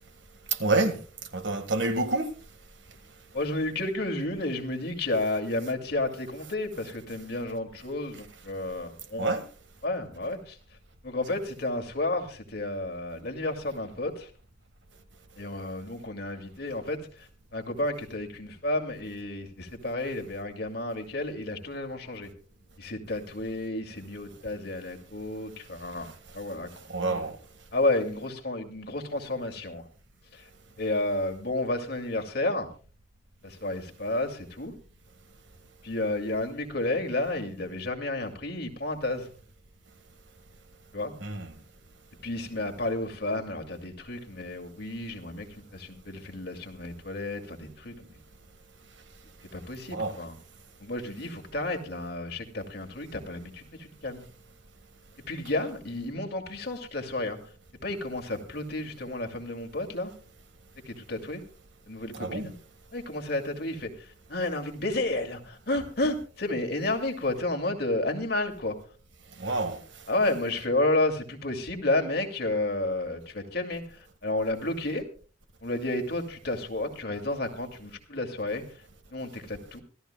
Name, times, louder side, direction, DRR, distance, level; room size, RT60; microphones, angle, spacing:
voice 1, 0.6-1.0 1.3-2.3 9.2-9.4 26.9-27.4 41.2-41.5 49.9-50.2 62.1-62.5 69.4-69.8, right 2 dB, 75° right, 1.7 m, -27 dB
voice 2, 3.3-9.3 9.8-10.6 11.0-14.3 15.4-22.3 22.8-26.7 27.0-27.2 27.7-29.9 30.3-30.5 30.8-32.7 33.4-34.7 35.8-39.3 40.9-41.1 42.2-47.9 49.5-50.3 50.8-54.3 55.2-57.4 57.7-60.1 60.9-61.4 61.9-62.5 62.9-68.8 70.1-75.0 75.6-78.7 79.1-79.8, left 2 dB, 60° left, 2.3 m, -31 dB
25.5 x 14.5 x 2.3 m
head